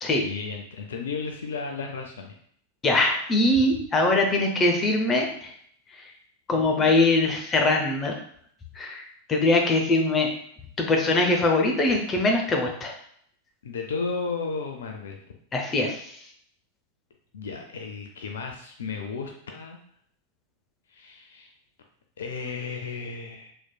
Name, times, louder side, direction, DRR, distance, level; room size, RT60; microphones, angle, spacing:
voice 1, 0.1-2.4 6.5-6.9 13.6-15.2 17.3-19.8 20.9-21.5 22.2-23.5, left 4 dB, 65° left, 3 dB, 0.5 m, -34 dB
voice 2, 2.8-5.5 6.0-6.1 6.5-8.2 8.7-9.0 9.3-10.3 10.8-12.9 15.5-16.1, left 2 dB, 20° left, 2 dB, 0.7 m, -22 dB
4.1 x 3.1 x 2.2 m, 0.64 s
figure-of-eight pair, 90°, 0 cm